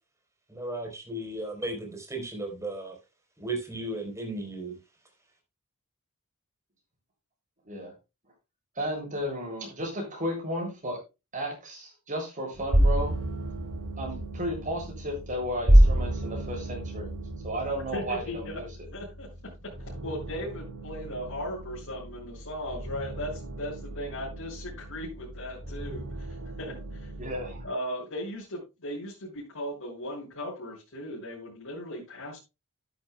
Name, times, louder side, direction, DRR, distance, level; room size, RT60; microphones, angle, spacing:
voice 1, 0.5-3.0 3.4-4.8, right 2 dB, 15° right, 2 dB, 4.2 m, -35 dB
voice 2, 8.8-11.0 11.3-13.2 14.0-17.1 17.4-18.7 27.2-27.7, equal, 35° right, 1 dB, 7.4 m, -33 dB
sound 1, 12.5-27.7, right 1 dB, 75° right, 3.9 m, -29 dB
voice 3, 17.9-18.6 18.9-19.3 19.6-27.1 27.6-32.4, equal, 65° left, -7 dB, 6.3 m, -37 dB
12.5 x 11.5 x 2.3 m, 0.27 s
head